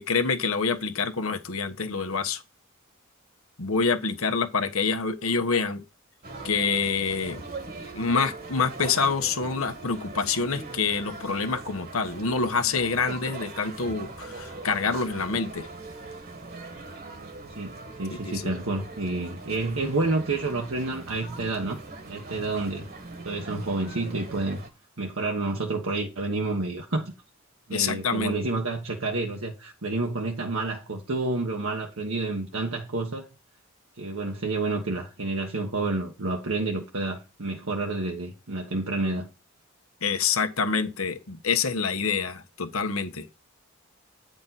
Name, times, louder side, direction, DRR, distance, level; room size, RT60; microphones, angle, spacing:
voice 1, 0.0-2.4 3.6-5.8 6.4-7.4 7.9-15.7 18.2-18.5 27.7-28.3 40.0-43.3, left 5 dB, 90° left, 1.2 m, -26 dB
sound 1, 6.2-24.7, right 3 dB, 50° right, 1.6 m, -41 dB
voice 2, 17.6-22.9 23.2-24.6 25.0-27.1 27.7-33.3 34.0-39.3, right 2 dB, 75° right, 1.3 m, -29 dB
9.2 x 5.2 x 4.1 m
head